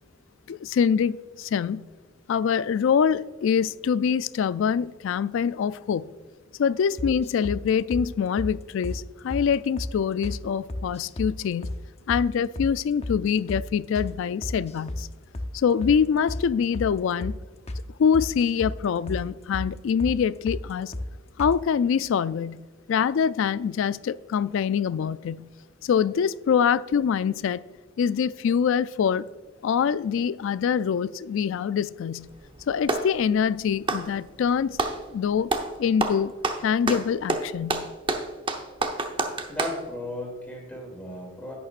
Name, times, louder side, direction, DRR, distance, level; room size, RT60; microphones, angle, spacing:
voice 1, 0.5-1.9 2.3-6.1 6.6-11.8 12.1-15.1 15.5-17.4 18.0-20.9 21.4-25.5 25.8-27.6 28.0-29.3 29.6-32.3 32.7-34.8 35.1-35.5 35.8-36.3 36.6-37.9, left 7 dB, 65° left, 18 dB, 0.3 m, -24 dB
sound 1, 7.0-7.6 7.9-8.1 8.4-8.5 8.8-9.0 9.3-9.5 9.8-9.9 10.2-10.4 10.7-11.3 11.6-11.8 12.1-12.3 12.6-12.7 13.0-13.2 13.5-13.6 13.9-14.1 14.4-15.0 15.3-15.5 15.8-16.0 16.3-16.4 16.7-16.9 17.2-17.4 17.7-17.8 18.1-18.8 19.1-19.2 19.5-19.7 20.0-20.2 20.5-20.6 20.9-21.1 21.4-21.6, left 1 dB, 30° left, 0.8 m, -32 dB
Clapping, 32.2-33.1 33.8-35.0 35.5-35.7 36.0-39.8, right 2 dB, 25° right, 0.8 m, -28 dB
voice 2, 39.5-41.5, left 1 dB, 5° left, -2 dB, 2.5 m, -35 dB
11.0 x 9.4 x 2.5 m, 1.4 s
head